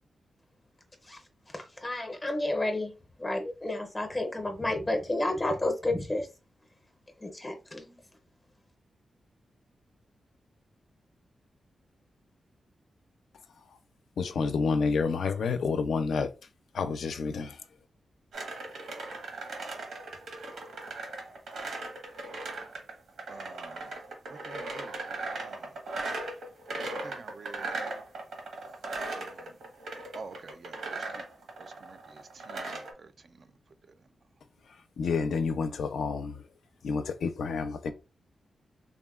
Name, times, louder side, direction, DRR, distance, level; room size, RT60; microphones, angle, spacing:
voice 1, 1.5-2.9 3.2-6.3 7.2-8.0, left 2 dB, 15° left, 0.5 m, -31 dB
voice 2, 14.2-16.3 16.7-17.5 35.0-36.3 36.8-37.9, left 5 dB, 75° left, 0.4 m, -29 dB
sound 1, 18.3-32.9, right 2 dB, 85° right, 0.8 m, -38 dB
voice 3, 23.3-23.9 24.3-25.0 25.3-25.7 27.0-27.7 29.2-29.4 30.1-31.2 31.6-33.1, right 4 dB, 40° right, 0.3 m, -48 dB
3.5 x 2.1 x 2.3 m
wide cardioid pair, 175°, 0 cm